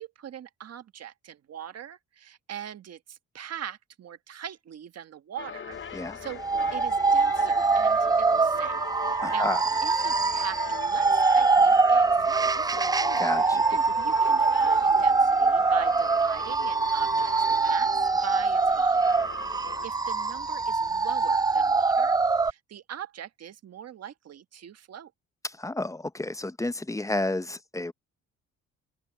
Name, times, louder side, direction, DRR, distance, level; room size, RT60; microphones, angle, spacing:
voice 1, 0.0-6.4 6.7-8.7 9.0-9.5 9.8-12.8 13.4-19.2 19.4-22.2 22.4-25.1, right 10 dB, 55° right, 1.4 m, -42 dB
sound 1, 5.4-19.9, left 8 dB, 40° left, 0.8 m, -41 dB
sound 2, 6.4-22.5, right 4 dB, 15° right, 0.3 m, -23 dB
voice 2, 9.2-9.6 13.2-13.6 25.4-27.9, left 2 dB, 10° left, 0.7 m, -31 dB
cardioid pair, 90°, 30 cm